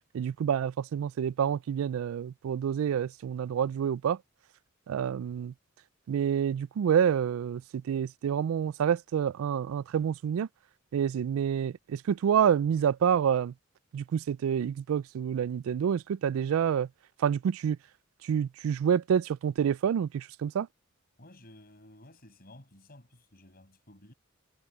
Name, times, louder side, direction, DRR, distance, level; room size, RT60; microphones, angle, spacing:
voice 1, 0.1-4.2 4.9-5.5 6.1-10.5 10.9-13.5 13.9-16.9 17.2-17.8 18.2-20.7, right 8 dB, 85° right, 0.3 m, -28 dB
voice 2, 21.2-24.1, left 1 dB, 45° left, 6.7 m, -54 dB
head